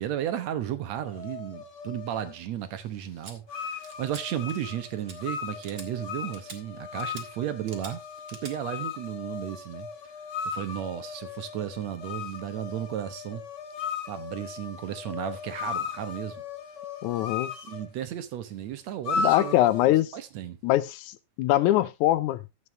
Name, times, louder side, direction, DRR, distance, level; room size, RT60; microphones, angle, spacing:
voice 1, 0.0-8.0 8.3-9.9 10.5-13.4 14.1-16.4 17.7-19.6 20.1-20.6, right 11 dB, 70° right, 2.2 m, -34 dB
sound 1, 1.1-2.4 3.5-17.9 19.1-19.9, left 5 dB, 50° left, 3.1 m, -37 dB
sound 2, 3.2-3.3 3.8-4.2 4.5-4.8 5.1-5.2 5.6-5.9 6.3-6.6 7.0-7.3 7.7-7.9 8.3-8.5, right 5 dB, 40° right, 1.9 m, -44 dB
voice 2, 17.0-17.5 19.2-20.1 20.6-22.4, left 14 dB, 85° left, 2.1 m, -23 dB
12.5 x 8.0 x 3.2 m
omnidirectional pair, 3.4 m